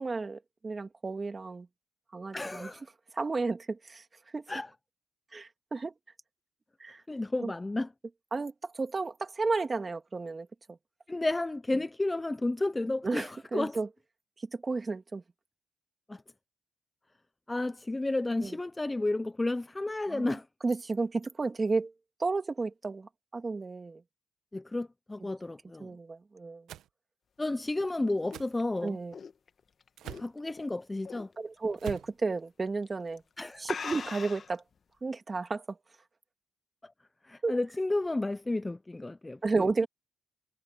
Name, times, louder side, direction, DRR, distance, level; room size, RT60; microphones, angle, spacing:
voice 1, 0.0-1.7 2.1-2.7 3.1-4.0 4.3-4.4 5.3-5.9 6.8-7.0 7.4-7.5 8.3-10.8 13.0-13.9 14.5-15.2 18.4-18.6 20.1-20.4 20.6-21.9 22.2-24.0 25.2-25.3 25.8-26.7 28.8-29.1 31.4-33.2 33.6-34.6 35.0-35.8 37.4-37.6 39.4-39.9, right 3 dB, 30° right, 2.2 m, -32 dB
voice 2, 2.3-2.8 4.5-4.7 7.1-7.9 11.1-13.8 16.1-16.2 17.5-20.4 24.5-25.9 27.4-29.0 30.2-31.3 33.4-33.6 37.3-39.4, left 2 dB, 15° left, 0.8 m, -32 dB
sound 1, 26.7-26.9 28.3-28.5 30.0-30.3 31.8-32.1, right 13 dB, 80° right, 1.4 m, -42 dB
sound 2, 27.5-30.6 31.0-31.4 31.7-31.8 32.7-32.9 33.2-33.3 33.6-34.6, left 6 dB, 45° left, 1.3 m, -41 dB
cardioid pair, 90°, 0 cm